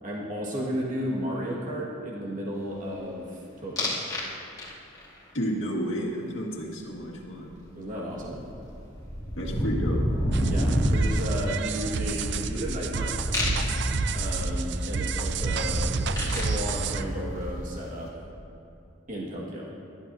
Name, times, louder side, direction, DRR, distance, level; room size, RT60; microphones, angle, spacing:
voice 1, 0.0-4.0 7.8-8.4 10.5-13.2 14.1-18.3 19.1-19.7, equal, 40° right, -4 dB, 1.9 m, -33 dB
sound 1, 3.8-4.3 4.6-5.1 7.5-7.6 7.8-17.9, equal, 20° left, 2.6 m, -29 dB
voice 2, 5.3-7.5 9.4-10.0, equal, 70° left, -2 dB, 1.9 m, -31 dB
sound 2, 10.3-17.0, right 6 dB, 60° right, 0.4 m, -31 dB
21.0 x 12.0 x 2.8 m, 2.7 s
head